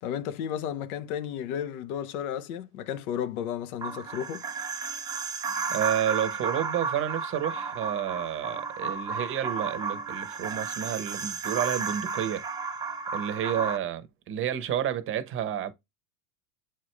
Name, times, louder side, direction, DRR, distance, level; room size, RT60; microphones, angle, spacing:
voice 1, 0.0-4.4, left 9 dB, 70° left, 1.1 m, -33 dB
sound 1, 3.8-13.8, right 5 dB, 10° right, 0.5 m, -33 dB
voice 2, 5.7-12.4 13.1-15.7, right 10 dB, 25° right, 0.9 m, -30 dB
7.3 x 4.5 x 3.2 m
supercardioid pair, 140°, 46 cm